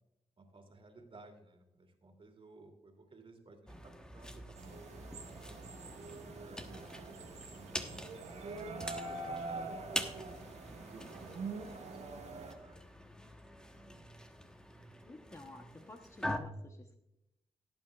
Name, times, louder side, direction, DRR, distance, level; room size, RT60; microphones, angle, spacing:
voice 1, 0.4-5.7 6.4-7.8 8.4-10.1 10.7-12.8 13.2-14.1, right 3 dB, 50° right, 4 dB, 2.8 m, -58 dB
sound 1, 3.7-16.4, left 1 dB, 5° left, 1.3 m, -45 dB
sound 2, 4.5-12.5, right 3 dB, 75° right, 1.7 m, -45 dB
voice 2, 15.0-17.0, left 2 dB, 25° left, 4 dB, 1.0 m, -52 dB
17.0 x 8.8 x 2.4 m, 0.85 s
cardioid pair, 70°, 12 cm